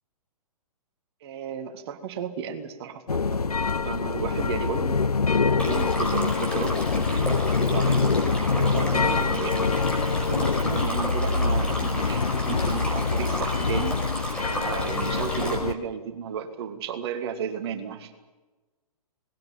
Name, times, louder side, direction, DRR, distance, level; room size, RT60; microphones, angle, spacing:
voice 1, 1.2-3.4 3.7-5.0 5.4-9.7 10.1-14.0 14.5-18.1, right 7 dB, 45° right, 9 dB, 1.9 m, -34 dB
sound 1, 3.1-15.7, left 4 dB, 85° left, 0.8 m, -25 dB
Stream, 5.6-15.6, equal, 5° left, 5.0 m, -33 dB
19.5 x 19.5 x 9.6 m, 1.2 s
figure-of-eight pair, 120°, 19 cm